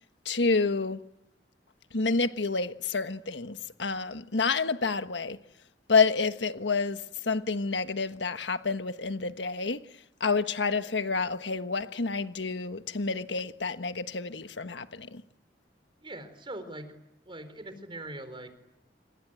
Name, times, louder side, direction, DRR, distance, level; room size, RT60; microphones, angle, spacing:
voice 1, 0.2-1.1 1.9-5.4 5.9-9.8 10.2-15.2, left 4 dB, 85° left, 1.4 m, -29 dB
voice 2, 16.0-17.0 17.3-18.5, right 1 dB, 30° right, 4.2 m, -41 dB
27.5 x 24.0 x 9.0 m
head